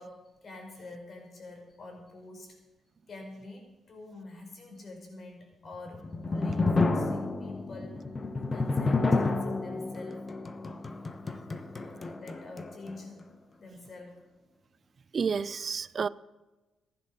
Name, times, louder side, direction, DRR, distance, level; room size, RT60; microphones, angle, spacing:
voice 1, 0.0-2.6 3.1-8.0 8.3-10.3 11.7-13.3 13.6-14.2, left 2 dB, 45° left, 2 dB, 5.0 m, -46 dB
sound 1, 5.7-13.0, left 3 dB, 30° left, 1.2 m, -30 dB
voice 2, 15.1-16.1, right 6 dB, 45° right, 18 dB, 0.5 m, -30 dB
15.0 x 10.5 x 6.5 m, 1.1 s
cardioid pair, 90°, 0 cm